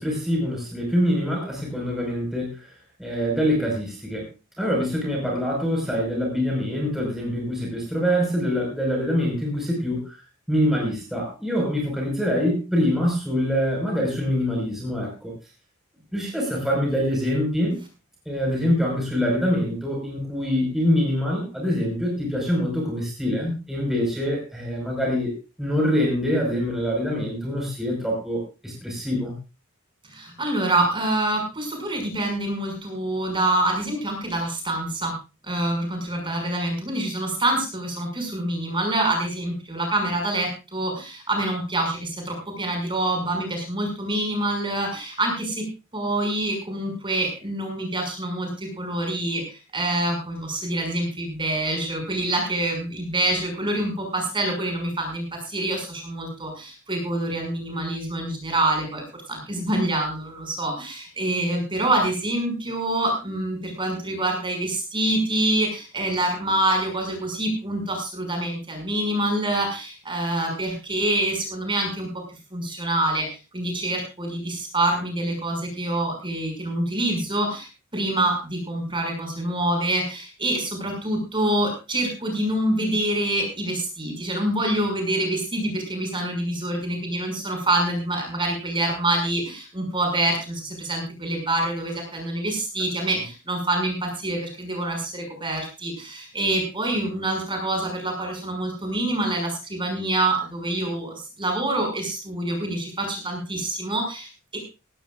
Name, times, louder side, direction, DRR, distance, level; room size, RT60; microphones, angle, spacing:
voice 1, 0.0-2.7 3.0-4.2 4.6-10.2 10.5-15.3 16.1-17.8 18.2-29.3, equal, ahead, -2 dB, 5.0 m, -25 dB
voice 2, 30.1-35.2 35.4-45.7 45.9-73.3 73.5-104.6, right 1 dB, 25° right, 2 dB, 6.1 m, -26 dB
18.0 x 17.0 x 2.5 m, 0.30 s
head